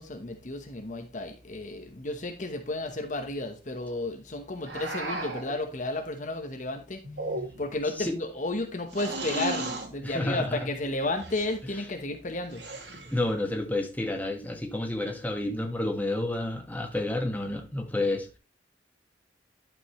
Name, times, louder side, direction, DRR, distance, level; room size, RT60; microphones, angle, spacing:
voice 1, 0.0-7.0 7.6-12.6, left 2 dB, 45° left, 5 dB, 1.1 m, -33 dB
sound 1, 4.6-5.5 7.0-7.8 8.9-9.9 11.2-11.6 12.5-13.2, right 2 dB, 85° right, 2.2 m, -35 dB
voice 2, 10.0-10.6 13.1-18.4, left 2 dB, 10° left, 2 dB, 1.4 m, -30 dB
11.5 x 5.3 x 3.0 m, 0.32 s
head